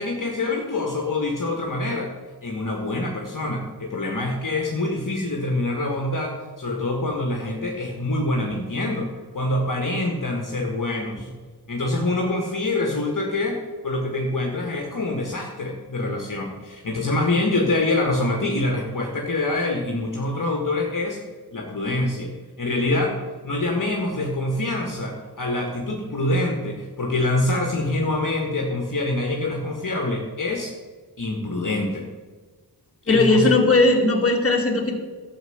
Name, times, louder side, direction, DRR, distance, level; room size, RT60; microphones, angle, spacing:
voice 1, 0.0-2.1 2.4-11.3 11.7-21.2 21.5-23.2 23.4-30.7 31.2-32.0 33.1-33.5, left 2 dB, 55° left, 1 dB, 1.7 m, -25 dB
voice 2, 33.1-35.0, left 2 dB, 35° left, 1 dB, 2.2 m, -18 dB
12.5 x 6.7 x 7.9 m, 1.4 s
wide cardioid pair, 85°, 39 cm